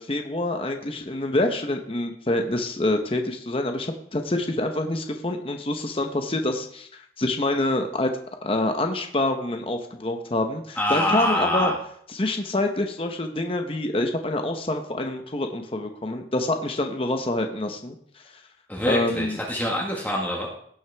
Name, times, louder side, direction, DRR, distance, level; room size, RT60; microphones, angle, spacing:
voice 1, 0.0-8.1 8.4-11.7 12.1-18.2 18.9-19.4, left 2 dB, 30° left, 5 dB, 0.8 m, -26 dB
voice 2, 10.8-11.7 18.7-20.5, left 1 dB, 10° left, -3 dB, 1.5 m, -25 dB
17.0 x 6.2 x 3.4 m, 0.63 s
head